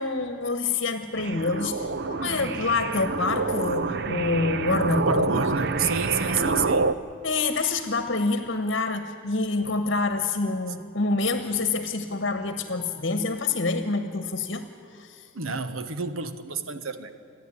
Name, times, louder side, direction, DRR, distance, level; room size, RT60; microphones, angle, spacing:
voice 1, 0.0-5.4 6.3-6.7 7.2-14.6 14.9-15.2, left 3 dB, 55° left, 9 dB, 1.1 m, -27 dB
sound 1, 1.2-6.9, right 3 dB, 50° right, 0.6 m, -27 dB
voice 2, 5.1-6.9 15.3-17.1, right 5 dB, 80° right, 10 dB, 1.2 m, -29 dB
28.0 x 10.5 x 10.0 m, 2.4 s
head